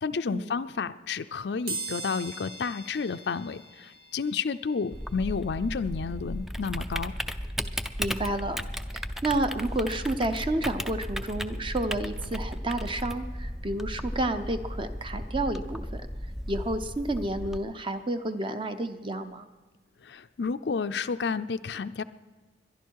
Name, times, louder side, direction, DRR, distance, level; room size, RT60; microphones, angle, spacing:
voice 1, 0.0-7.1 20.0-22.0, left 5 dB, 65° left, 12 dB, 0.5 m, -31 dB
sound 1, 1.7-12.3 12.8-12.9 14.0-14.2 14.4-16.5 16.9-19.5 19.9-20.0 20.4-20.5, right 3 dB, 55° right, 2.0 m, -45 dB
Typing, 4.9-17.6, equal, ahead, 0.4 m, -35 dB
voice 2, 8.0-8.6 8.9-16.0 16.5-19.5, right 1 dB, 30° right, 8 dB, 0.8 m, -30 dB
22.0 x 11.5 x 4.7 m, 1.3 s
head